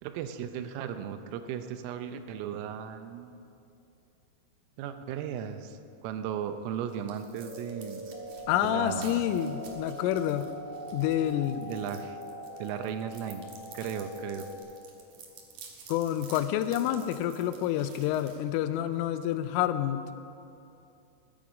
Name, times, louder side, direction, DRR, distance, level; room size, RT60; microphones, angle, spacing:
voice 1, 0.0-3.3 4.8-8.0 8.5-9.3 11.6-12.2 12.6-13.5 13.7-14.5, right 9 dB, 85° right, 8 dB, 3.4 m, -36 dB
sound 1, 6.4-19.0, right 5 dB, 60° right, 2.2 m, -52 dB
sound 2, 7.4-14.6, equal, 20° left, 2.7 m, -42 dB
voice 2, 8.5-10.5 10.9-11.7 15.9-20.1, left 11 dB, 85° left, 11 dB, 3.1 m, -28 dB
20.5 x 9.4 x 5.1 m, 2.7 s
omnidirectional pair, 5.8 m